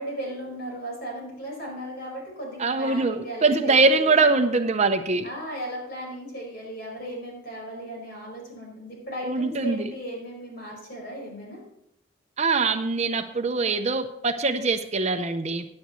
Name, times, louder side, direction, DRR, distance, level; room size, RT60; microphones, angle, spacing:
voice 1, 0.0-4.2 5.2-11.6, right 1 dB, 50° left, -1 dB, 4.9 m, -36 dB
voice 2, 2.6-5.3 9.2-9.9 12.4-15.7, right 3 dB, 35° right, 8 dB, 0.5 m, -23 dB
16.0 x 9.4 x 3.1 m, 0.80 s
head